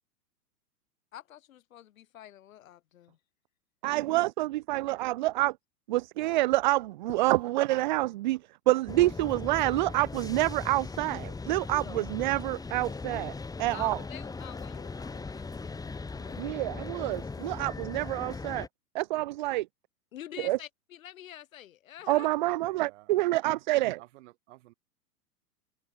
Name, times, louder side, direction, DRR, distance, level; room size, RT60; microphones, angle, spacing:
voice 1, 1.1-3.2 13.7-16.6 20.1-22.3, left 12 dB, 55° left, 3.3 m, -47 dB
voice 2, 3.8-5.5 5.9-8.4 8.7-13.3 13.6-14.0 16.4-18.7 18.9-19.7 20.4-20.6 22.1-24.0, right 18 dB, 30° right, 0.5 m, -27 dB
sound 1, 8.9-18.7, left 4 dB, 5° left, 2.5 m, -39 dB
voice 3, 22.1-23.1 24.0-24.7, right 18 dB, 45° right, 6.4 m, -54 dB
figure-of-eight pair, 105°, 49 cm